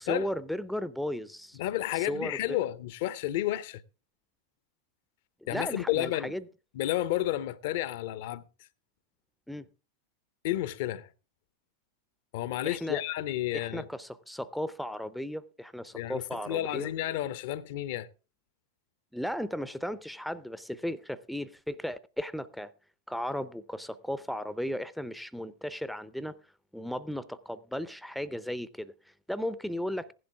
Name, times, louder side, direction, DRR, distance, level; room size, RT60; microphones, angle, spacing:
voice 1, 0.0-1.6 1.9-2.6 5.4-6.4 9.5-9.7 12.6-13.0 13.5-16.9 19.1-22.7 23.1-26.4 26.7-30.1, equal, ahead, 0.6 m, -35 dB
voice 2, 1.6-3.8 5.5-6.3 6.7-8.4 10.4-11.1 12.3-13.9 15.9-18.1, left 14 dB, 50° left, 0.7 m, -31 dB
16.0 x 11.0 x 3.5 m
figure-of-eight pair, 90°, 0 cm